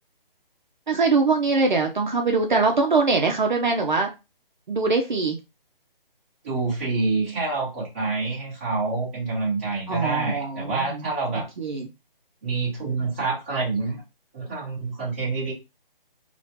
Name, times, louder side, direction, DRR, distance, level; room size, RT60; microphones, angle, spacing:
voice 1, 0.9-4.1 4.7-5.4 9.9-11.1 11.6-11.9, right 4 dB, 55° right, 2 dB, 0.5 m, -22 dB
voice 2, 6.4-11.5 12.4-14.0 14.3-15.5, right 3 dB, 15° right, -8 dB, 0.9 m, -27 dB
3.0 x 2.1 x 2.8 m, 0.26 s
hypercardioid pair, 170°, 29 cm